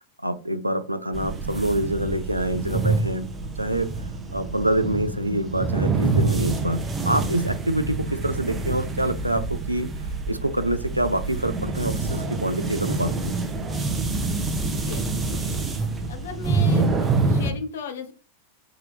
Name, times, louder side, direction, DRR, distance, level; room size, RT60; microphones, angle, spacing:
voice 1, 0.2-3.3 3.6-3.9 4.3-6.8 7.1-9.9 10.3-13.3, right 1 dB, 85° right, 0.3 m, -26 dB
sound 1, 1.1-17.5, right 3 dB, 20° right, 0.6 m, -26 dB
voice 2, 16.1-18.1, left 5 dB, 60° left, 0.6 m, -36 dB
3.6 x 2.9 x 3.3 m
figure-of-eight pair, 90°, 0 cm